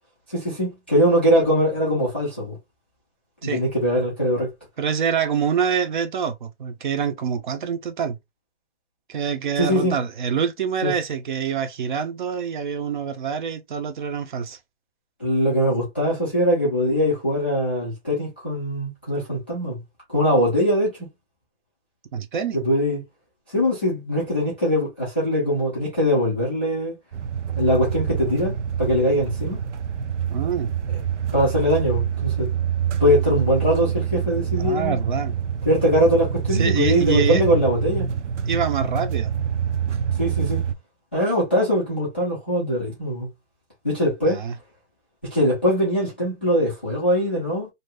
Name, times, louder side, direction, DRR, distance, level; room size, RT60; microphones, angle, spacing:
voice 1, 0.3-2.6 3.4-4.5 9.6-10.0 10.8-10.9 15.2-19.8 20.1-21.0 22.5-23.0 23.5-26.9 27.6-29.6 31.3-32.5 33.0-35.0 35.7-38.1 40.2-40.6 41.1-43.3 43.8-44.4 45.3-47.7, equal, 10° left, 0.3 m, -22 dB
voice 2, 4.8-8.2 9.1-14.6 22.1-22.6 30.3-30.7 34.6-35.4 36.5-37.4 38.5-39.3 44.3-44.5, right 7 dB, 45° right, 0.6 m, -26 dB
sound 1, 27.1-40.7, right 8 dB, 85° right, 0.7 m, -26 dB
2.7 x 2.5 x 3.3 m
hypercardioid pair, 155°, 35 cm